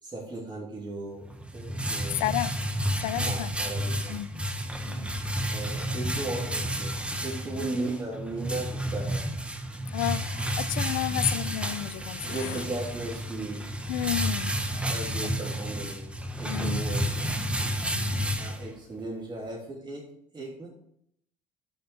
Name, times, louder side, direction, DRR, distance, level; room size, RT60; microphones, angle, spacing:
voice 1, 0.0-1.2 1.5-2.2 3.1-4.2 5.5-6.9 7.2-9.2 12.2-13.6 14.9-16.0 16.4-17.3 18.4-20.0 20.3-20.7, right 2 dB, 30° right, 3.1 m, -36 dB
sound 1, 1.2-19.0, equal, 5° right, 1.2 m, -31 dB
voice 2, 2.2-2.5 3.0-3.5 4.1-4.3 4.9-5.1 9.9-12.6 13.9-14.6 15.2-15.3 16.5-16.8 17.9-18.3, left 15 dB, 65° left, 0.4 m, -31 dB
7.1 x 5.9 x 6.2 m
hypercardioid pair, 60°, 16 cm